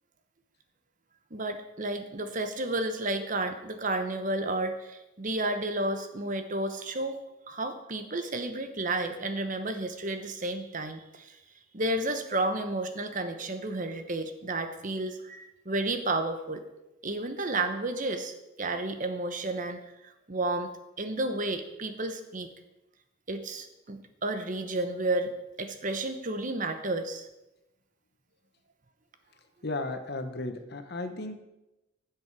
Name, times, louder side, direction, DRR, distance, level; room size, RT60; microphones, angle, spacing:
voice 1, 1.3-7.2 7.5-11.4 11.7-16.6 17.0-20.7 21.0-22.5 23.3-27.3, right 2 dB, 35° right, 8 dB, 0.9 m, -32 dB
voice 2, 29.6-31.4, left 2 dB, 50° left, 8 dB, 1.1 m, -34 dB
15.5 x 7.9 x 4.8 m, 0.97 s
head